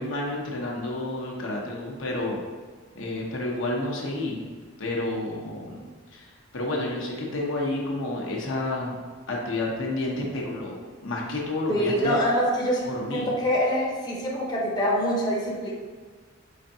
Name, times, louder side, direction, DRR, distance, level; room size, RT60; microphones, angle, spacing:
voice 1, 0.0-2.4 3.0-4.5 4.8-9.0 9.3-12.1 12.9-13.3, left 2 dB, 70° left, -2 dB, 0.8 m, -30 dB
voice 2, 11.7-15.7, equal, 20° left, -4 dB, 0.7 m, -25 dB
5.0 x 3.4 x 2.7 m, 1.5 s
head